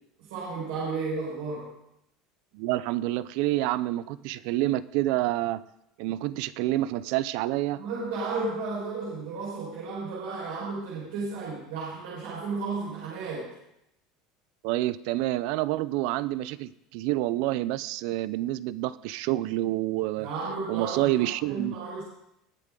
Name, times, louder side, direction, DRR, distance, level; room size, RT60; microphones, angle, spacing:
voice 1, 0.3-1.7 7.7-13.5 20.2-22.0, right 4 dB, 85° right, -7 dB, 4.8 m, -33 dB
voice 2, 2.5-5.6 6.0-7.8 14.6-20.3 20.7-21.7, right 16 dB, 65° right, 17 dB, 0.4 m, -28 dB
20.5 x 7.4 x 3.8 m, 0.82 s
supercardioid pair, 150°, 0 cm